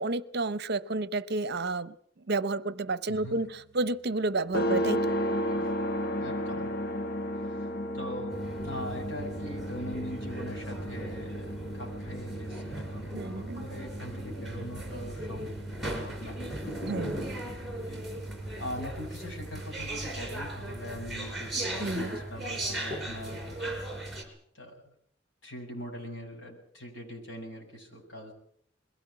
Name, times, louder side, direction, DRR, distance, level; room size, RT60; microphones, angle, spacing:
voice 1, 0.0-1.9 2.3-5.1 13.1-13.6 16.8-17.2 21.8-22.2, right 3 dB, 55° right, 0.8 m, -31 dB
voice 2, 3.1-3.4 5.5-5.7 6.2-6.7 7.4-7.7 7.9-8.4 8.6-16.7 17.8-18.3 18.6-23.8 24.5-24.9 25.4-28.3, left 1 dB, 70° left, 7.2 m, -42 dB
sound 1, 4.5-18.8, equal, 50° left, 1.4 m, -35 dB
sound 2, 8.3-24.2, right 1 dB, ahead, 4.9 m, -37 dB
22.0 x 16.5 x 8.7 m
head